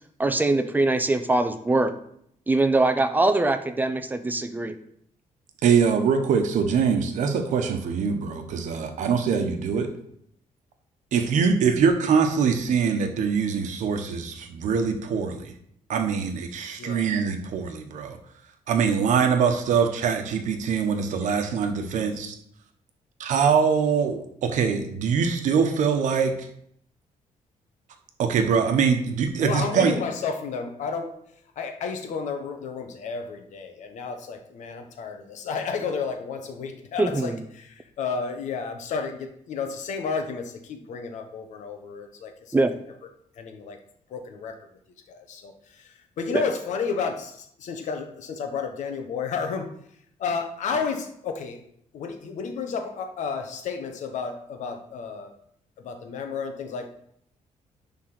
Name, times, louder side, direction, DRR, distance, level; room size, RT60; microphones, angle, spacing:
voice 1, 0.2-1.9 2.5-4.7 37.0-37.4 42.5-42.7 46.3-46.4, right 2 dB, 15° right, 9 dB, 0.5 m, -22 dB
voice 2, 5.6-9.9 11.1-15.5 15.9-18.2 18.7-22.3 23.2-26.5 28.2-29.9, right 6 dB, 70° right, 6 dB, 1.1 m, -23 dB
voice 3, 16.8-17.1 21.2-21.4 29.4-31.1 31.6-42.6 43.4-43.8 44.1-44.6 45.1-49.7 50.2-51.6 51.9-55.3 55.8-56.9, left 5 dB, 65° left, 6 dB, 1.1 m, -32 dB
10.0 x 3.9 x 6.1 m, 0.70 s
cardioid pair, 180°, 13 cm